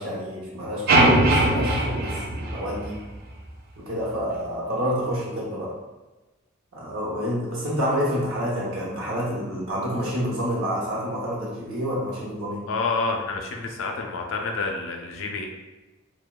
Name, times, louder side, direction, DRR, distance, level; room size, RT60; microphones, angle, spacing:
voice 1, 0.0-3.0 3.8-5.7 6.7-12.6, equal, 75° right, -4 dB, 0.7 m, -28 dB
sound 1, 0.9-3.2, right 1 dB, 45° right, 0.3 m, -20 dB
voice 2, 12.7-15.5, left 3 dB, 65° left, 2 dB, 0.4 m, -28 dB
2.8 x 2.1 x 2.2 m, 1.1 s
head